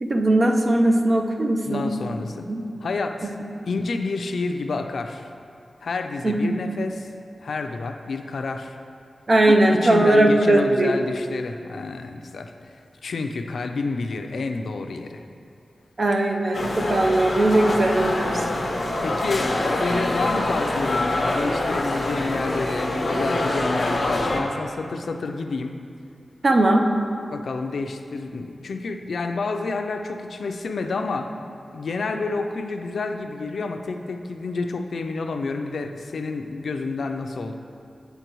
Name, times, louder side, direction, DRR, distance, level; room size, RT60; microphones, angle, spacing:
voice 1, 0.0-1.9 2.5-2.6 6.2-6.6 9.3-10.9 16.0-18.5 26.4-26.9, right 1 dB, 40° right, 2 dB, 0.6 m, -19 dB
voice 2, 1.6-2.5 2.8-3.3 3.7-5.3 5.8-7.1 7.4-8.8 9.4-12.7 13.0-15.2 19.0-25.7 27.3-31.3 31.7-37.5, left 3 dB, 80° left, 6 dB, 0.4 m, -29 dB
sound 1, 16.5-24.4, left 1 dB, 50° left, 1.0 m, -25 dB
8.2 x 7.9 x 3.0 m, 2.6 s
wide cardioid pair, 130°, 0 cm